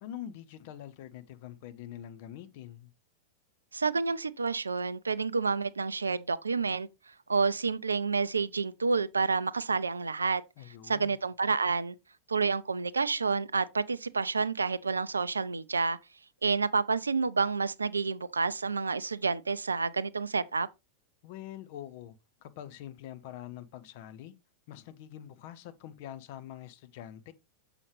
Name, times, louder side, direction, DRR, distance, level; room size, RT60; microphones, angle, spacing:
voice 1, 0.0-2.9 10.6-11.2 21.2-22.2 22.4-24.3 24.7-27.3, left 11 dB, 50° left, 0.6 m, -45 dB
voice 2, 3.7-6.9 7.3-10.4 10.8-11.9 12.3-16.0 16.4-20.7, right 4 dB, 75° right, 0.4 m, -29 dB
7.0 x 4.9 x 3.2 m
figure-of-eight pair, 90°, 0 cm